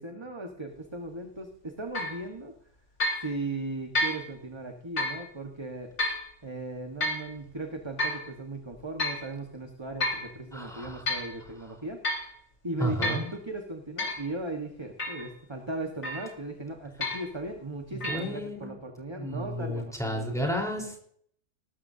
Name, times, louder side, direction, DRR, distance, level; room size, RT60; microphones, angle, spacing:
voice 1, 0.0-2.5 3.2-5.9 6.4-12.4 12.6-20.3, right 2 dB, 20° right, 3 dB, 1.4 m, -37 dB
sound 1, 2.0-2.2 3.0-3.3 4.0-4.2 5.0-5.2 6.0-6.2 7.0-7.3 8.0-8.3 9.0-9.3 10.0-10.3 10.8-11.3 12.0-12.3 13.0-13.3 14.0-14.2 15.0-15.3 16.0-16.4 17.0-17.3 18.0-18.2, left 1 dB, 60° left, 4.6 m, -30 dB
voice 2, 10.5-11.0 12.8-13.3 17.9-18.7 19.2-21.0, equal, ahead, -1 dB, 4.2 m, -32 dB
18.5 x 14.0 x 2.8 m, 0.62 s
omnidirectional pair, 1.5 m